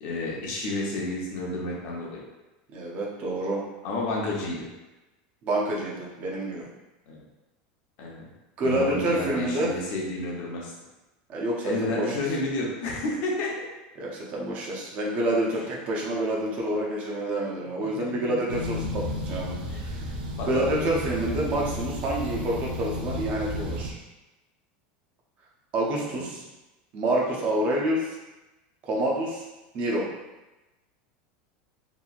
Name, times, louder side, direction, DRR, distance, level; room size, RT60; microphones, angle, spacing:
voice 1, 0.0-2.2 3.8-4.7 7.1-7.2 8.0-8.2 8.6-10.7 11.6-13.5 17.8-18.2 19.7-20.1 20.4-20.5 26.1-26.2, left 2 dB, 45° left, -3 dB, 0.7 m, -31 dB
voice 2, 2.7-3.6 5.4-6.7 8.6-9.7 11.3-12.2 14.0-20.1 20.4-23.9 25.7-26.4 26.9-28.2 28.8-29.4 29.7-30.1, right 1 dB, 30° right, -3 dB, 0.6 m, -28 dB
sound 1, 18.5-23.9, left 1 dB, 85° right, 0.5 m, -32 dB
2.9 x 2.7 x 2.4 m, 1.1 s
supercardioid pair, 165°, 5 cm